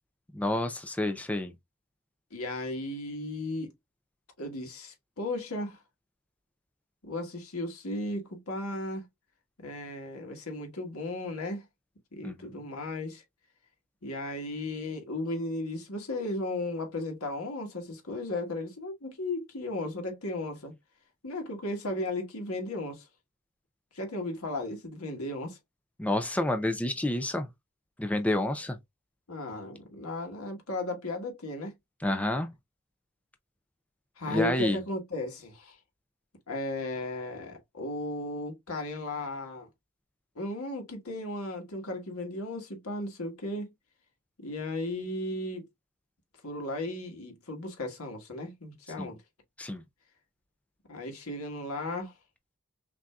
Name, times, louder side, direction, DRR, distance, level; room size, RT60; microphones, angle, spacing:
voice 1, 0.3-1.5 12.2-12.6 26.0-27.5 28.0-28.8 32.0-32.5 34.3-34.8 49.0-49.1 49.6-49.8, left 1 dB, 5° left, 0.4 m, -29 dB
voice 2, 2.3-3.7 4.4-5.8 7.0-9.0 9.6-11.6 12.1-13.2 14.0-20.7 21.2-23.1 23.9-25.6 29.3-31.7 34.2-35.8 36.5-39.7 40.3-43.7 44.4-45.7 46.4-49.2 50.9-52.1, left 2 dB, 85° left, 1.5 m, -35 dB
5.9 x 2.7 x 2.2 m
head